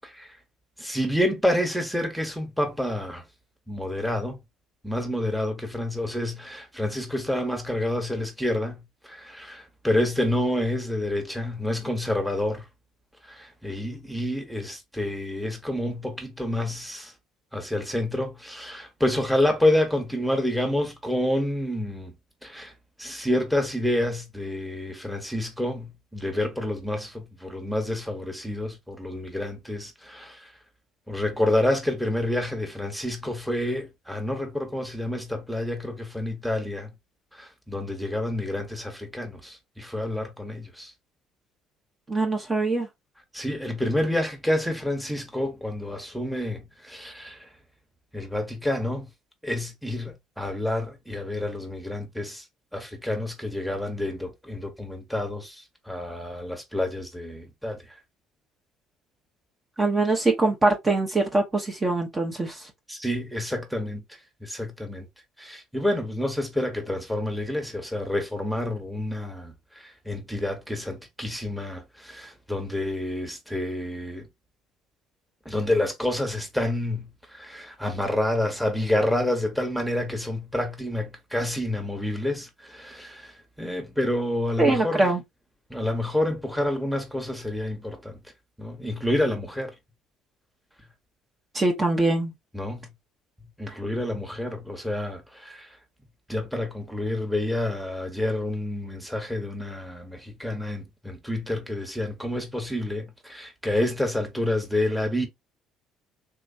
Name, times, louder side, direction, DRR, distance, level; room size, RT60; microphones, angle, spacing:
voice 1, 0.0-0.4 0.8-3.2 3.7-4.4 4.8-12.7 13.2-17.1 17.5-22.1 22.4-22.7 23.0-30.5 31.1-36.9 37.3-40.9 43.3-47.5 48.1-49.1 49.4-52.4 52.7-57.8 62.9-65.1 65.4-74.3 75.4-85.0 85.7-88.2 88.6-89.7 92.5-92.9 93.6-95.7 96.3-105.3, left 1 dB, ahead, 1.3 m, -28 dB
voice 2, 42.1-42.9 59.8-62.7 84.6-85.2 91.5-92.3 93.7-93.8, right 2 dB, 25° right, 1.1 m, -23 dB
3.5 x 3.0 x 2.6 m
hypercardioid pair, 70°, 0 cm